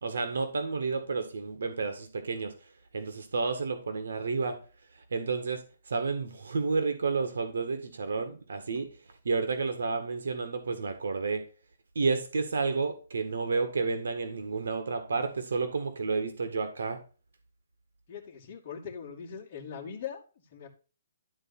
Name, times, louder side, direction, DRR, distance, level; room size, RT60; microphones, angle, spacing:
voice 1, 0.0-2.5 2.9-4.6 5.1-8.9 9.3-11.4 12.0-17.0, right 4 dB, 80° right, 7 dB, 2.0 m, -31 dB
voice 2, 18.1-20.7, left 7 dB, 25° left, -2 dB, 2.5 m, -41 dB
12.0 x 4.3 x 4.3 m, 0.35 s
hypercardioid pair, 175°, 0 cm